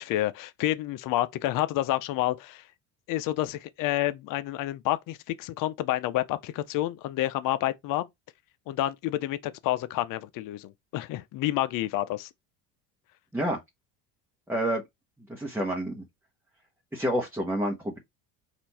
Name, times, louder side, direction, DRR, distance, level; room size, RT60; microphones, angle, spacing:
voice 1, 0.0-2.6 3.1-8.1 8.7-12.3, left 14 dB, 55° left, 0.6 m, -29 dB
voice 2, 14.5-14.8 15.3-16.0 16.9-18.0, equal, 5° right, 1.0 m, -28 dB
4.3 x 2.6 x 4.1 m
supercardioid pair, 95°, 39 cm